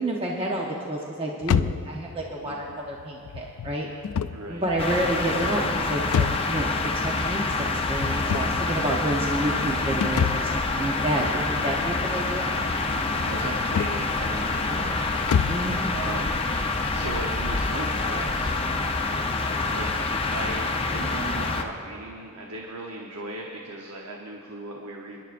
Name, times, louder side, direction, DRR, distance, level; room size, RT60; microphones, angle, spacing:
voice 1, 0.0-3.9 4.5-12.5 15.5-15.9, right 1 dB, 25° right, -2 dB, 0.8 m, -29 dB
sound 1, 1.4-15.8, left 7 dB, 80° left, 0.3 m, -31 dB
voice 2, 2.4-2.8 4.3-4.7 13.2-15.6 15.9-16.4 16.9-18.5 19.7-25.2, right 2 dB, 85° right, 0 dB, 0.9 m, -37 dB
sound 2, 4.8-21.6, left 3 dB, 25° left, 0.6 m, -27 dB
24.0 x 11.0 x 2.5 m, 2.6 s
head